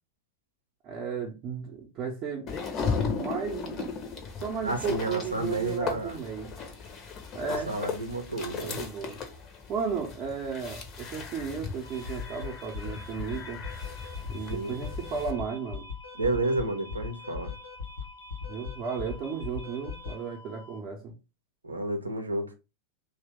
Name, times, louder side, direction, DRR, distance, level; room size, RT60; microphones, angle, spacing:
voice 1, 0.8-2.6 3.2-3.9 4.4-6.5 7.3-7.9 8.6-9.2 9.7-13.6 14.3-15.9 18.5-21.1, right 6 dB, 35° right, 0.6 m, -34 dB
sound 1, 2.5-15.3, left 5 dB, 30° left, 0.7 m, -37 dB
voice 2, 4.6-6.2 7.7-8.8 14.5-14.8 16.1-17.5 21.6-22.5, right 2 dB, 80° right, 0.6 m, -31 dB
sound 2, 11.8-20.8, left 5 dB, 70° left, 0.9 m, -40 dB
2.9 x 2.2 x 3.4 m
figure-of-eight pair, 90°, 0 cm